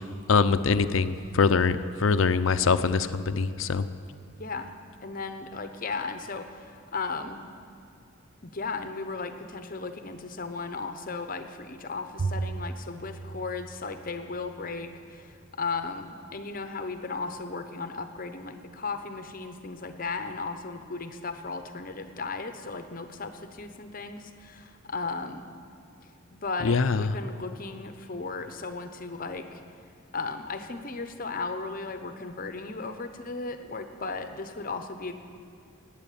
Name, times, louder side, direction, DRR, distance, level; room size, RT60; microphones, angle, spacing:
voice 1, 0.3-3.9 26.6-27.0, left 5 dB, 70° left, 12 dB, 0.6 m, -23 dB
voice 2, 4.4-4.7 5.0-7.5 8.4-25.5 26.0-29.6 30.1-35.1, left 4 dB, 40° left, 8 dB, 0.9 m, -36 dB
Bowed string instrument, 12.2-14.7, right 3 dB, 40° right, 0.6 m, -35 dB
14.0 x 9.1 x 9.2 m, 2.5 s
head